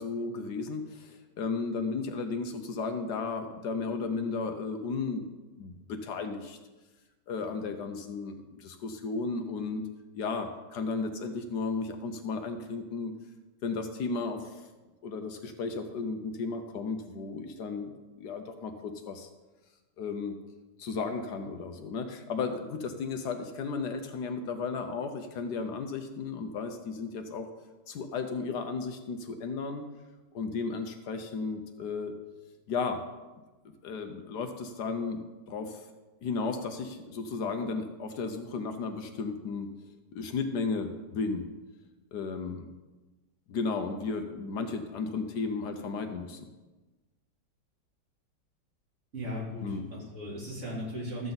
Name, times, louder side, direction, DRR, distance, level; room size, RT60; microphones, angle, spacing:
voice 1, 0.0-5.3 5.6-6.6 7.3-9.8 10.1-13.1 13.6-14.7 15.0-17.9 18.2-19.3 20.0-20.4 20.8-27.5 27.9-29.9 30.3-32.1 32.7-33.0 33.6-35.2 35.5-35.9 36.2-39.7 40.1-41.5 42.1-42.7 43.5-46.4 49.6-49.8, left 4 dB, 70° left, 6 dB, 1.3 m, -34 dB
voice 2, 49.1-51.3, equal, 40° right, -6 dB, 3.7 m, -37 dB
13.5 x 7.8 x 4.0 m, 1.2 s
omnidirectional pair, 1.9 m